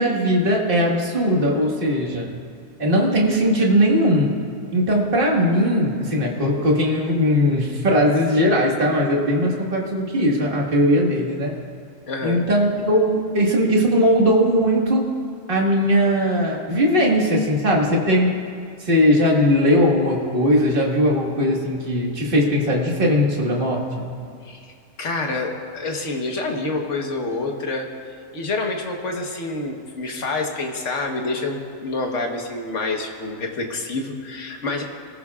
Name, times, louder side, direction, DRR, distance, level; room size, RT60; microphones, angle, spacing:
voice 1, 0.0-2.3 2.8-4.4 4.7-11.5 12.2-15.1 15.5-18.4 18.8-24.1, equal, 40° right, -2 dB, 1.9 m, -19 dB
voice 2, 12.1-12.4 24.4-24.7 25.0-27.9 28.3-34.8, left 3 dB, 60° left, 2 dB, 1.6 m, -27 dB
22.0 x 14.5 x 2.4 m, 2.3 s
omnidirectional pair, 1.4 m